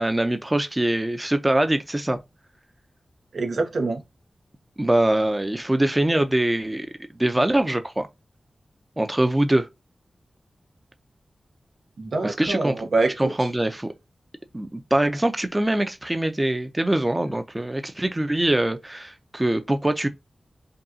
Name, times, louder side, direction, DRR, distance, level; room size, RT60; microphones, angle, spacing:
voice 1, 0.0-2.2 4.8-6.9 7.2-8.1 9.0-9.7 12.2-12.7 13.2-13.9 14.5-20.1, right 1 dB, 20° right, 0.5 m, -23 dB
voice 2, 3.3-4.0 12.0-13.5, right 3 dB, 75° right, 0.9 m, -25 dB
5.3 x 2.3 x 2.7 m
wide cardioid pair, 70°, 0 cm